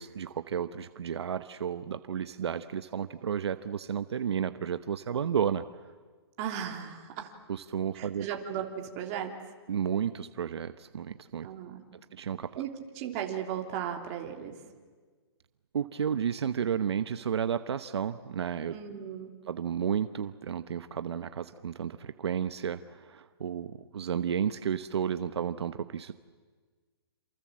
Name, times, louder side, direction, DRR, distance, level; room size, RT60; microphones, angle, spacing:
voice 1, 0.0-5.7 7.5-8.3 9.7-11.5 12.1-12.6 15.7-18.8 19.5-26.1, right 8 dB, 75° right, 11 dB, 1.0 m, -32 dB
voice 2, 6.4-7.4 7.9-9.3 11.4-11.8 12.6-14.6 18.7-19.3, right 9 dB, 30° right, 2 dB, 3.3 m, -36 dB
28.0 x 28.0 x 7.6 m, 1.5 s
hypercardioid pair, 160°, 14 cm